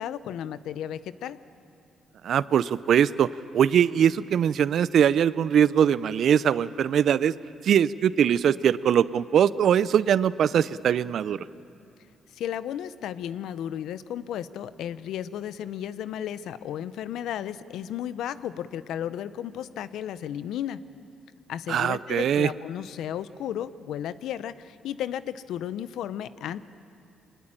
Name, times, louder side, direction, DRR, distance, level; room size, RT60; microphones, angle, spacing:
voice 1, 0.0-1.4 12.3-20.8 21.5-26.6, left 10 dB, 80° left, 15 dB, 0.7 m, -34 dB
voice 2, 2.2-3.3 3.5-7.3 7.6-11.5 21.7-22.5, right 9 dB, 65° right, 18 dB, 0.5 m, -22 dB
23.5 x 20.0 x 8.9 m, 2.7 s
cardioid pair, 90°, 0 cm